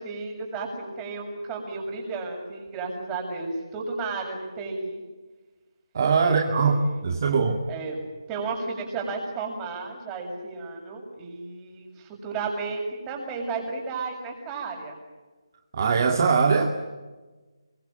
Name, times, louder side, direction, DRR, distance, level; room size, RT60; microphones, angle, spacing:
voice 1, 0.0-5.0 6.2-7.0 7.7-8.0 8.3-15.0, right 4 dB, 15° right, 1 dB, 7.2 m, -33 dB
voice 2, 5.9-7.6 15.7-16.7, right 5 dB, 40° right, 3 dB, 2.5 m, -21 dB
27.0 x 24.5 x 9.1 m, 1.3 s
figure-of-eight pair, 155°, 3 cm